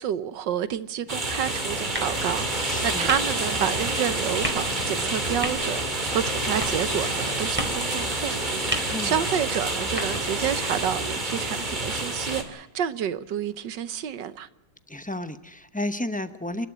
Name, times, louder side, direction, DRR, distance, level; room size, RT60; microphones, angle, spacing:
voice 1, 0.0-14.5, right 9 dB, 90° right, 1.7 m, -29 dB
sound 1, 1.1-12.4, right 2 dB, 25° right, 2.8 m, -28 dB
sound 2, 1.9-11.0, equal, 5° right, 4.3 m, -38 dB
voice 2, 2.7-3.1 8.9-9.2 14.9-16.7, left 1 dB, 15° left, 0.3 m, -32 dB
28.5 x 12.5 x 8.2 m
omnidirectional pair, 1.9 m